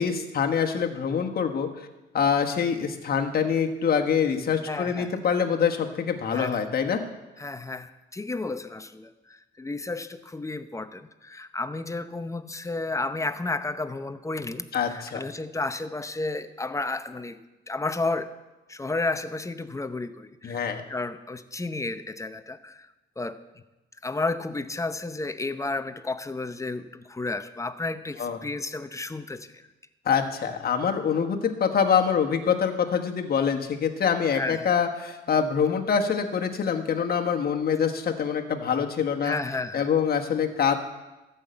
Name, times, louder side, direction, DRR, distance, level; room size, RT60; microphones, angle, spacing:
voice 1, 0.0-1.9 2.1-7.0 14.7-15.2 20.4-20.8 28.2-28.4 30.0-39.4 39.7-40.8, left 7 dB, 50° left, 4 dB, 1.4 m, -25 dB
voice 2, 4.7-5.1 6.3-6.6 7.4-17.4 17.7-18.3 18.7-22.9 23.2-23.4 24.0-29.6 34.3-34.7 39.2-39.9, left 3 dB, 15° left, 11 dB, 0.7 m, -32 dB
13.5 x 5.7 x 7.8 m, 1.1 s
cardioid pair, 90°, 20 cm